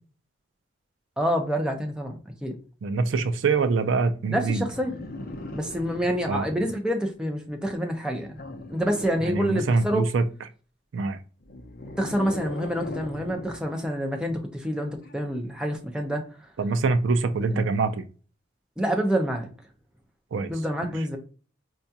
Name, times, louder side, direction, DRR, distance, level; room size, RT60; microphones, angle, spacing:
voice 1, 1.2-2.5 4.3-4.9 5.5-8.4 8.7-10.0 12.0-16.2 17.5-17.6 18.8-19.5 20.5-21.2, equal, 5° right, 0.5 m, -27 dB
voice 2, 2.8-4.6 6.3-6.7 9.2-10.2 10.9-11.2 16.6-18.0 20.3-20.5 20.8-20.9, right 4 dB, 75° right, 0.4 m, -24 dB
sound 1, 4.7-6.7 8.4-10.1 11.4-13.7 15.0-15.1, left 2 dB, 50° left, 0.5 m, -39 dB
4.6 x 2.3 x 2.7 m
head